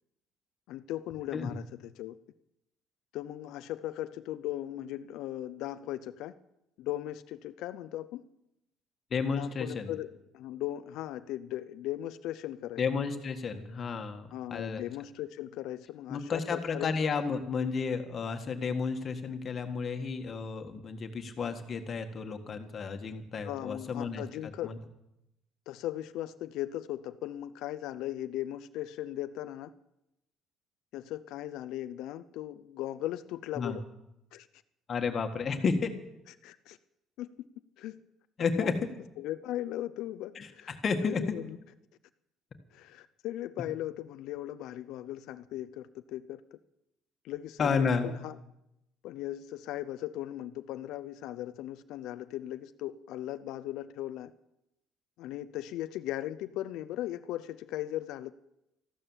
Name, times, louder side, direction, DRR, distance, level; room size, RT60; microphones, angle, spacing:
voice 1, 0.7-2.2 3.1-6.3 6.8-8.2 9.3-12.8 14.3-17.0 23.4-24.7 25.7-29.7 30.9-33.8 34.3-34.5 36.4-36.8 37.2-37.5 37.8-38.0 38.4-38.8 39.2-40.8 41.0-41.6 42.7-46.6 47.2-48.4 49.0-54.3 55.2-58.3, left 13 dB, 75° left, 12 dB, 0.6 m, -38 dB
voice 2, 9.1-9.9 12.8-14.8 16.1-24.2 24.6-24.8 33.6-33.8 34.9-35.9 38.4-38.7 40.4-41.2 47.6-48.1, left 5 dB, 40° left, 6 dB, 1.7 m, -32 dB
14.0 x 12.0 x 7.3 m, 0.86 s
cardioid pair, 125°, 0 cm